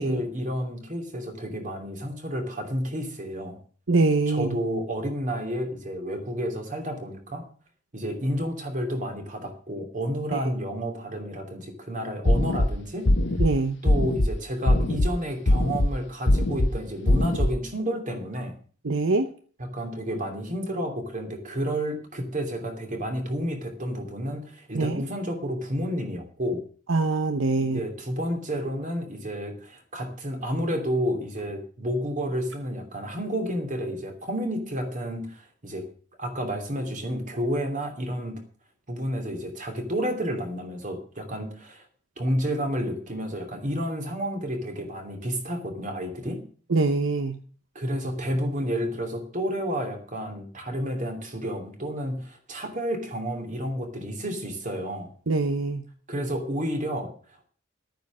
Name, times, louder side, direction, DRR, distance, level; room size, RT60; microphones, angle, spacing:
voice 1, 0.0-3.6 4.3-7.4 7.9-13.1 13.8-18.6 19.6-26.6 27.6-35.8 36.2-38.4 38.9-41.8 42.2-46.4 47.7-55.1 56.1-57.1, equal, 40° right, 4 dB, 2.8 m, -30 dB
voice 2, 3.9-4.6 10.3-10.4 13.4-13.8 18.8-19.3 24.7-25.0 26.9-27.8 46.7-47.3 55.3-55.8, right 3 dB, 70° right, 8 dB, 0.8 m, -23 dB
sound 1, 12.2-12.7 13.1-13.5 13.9-14.3 14.7-15.1 15.5-15.9 16.3-16.7 17.1-17.5, left 1 dB, 65° left, 1.0 m, -21 dB
12.0 x 9.2 x 6.2 m, 0.44 s
head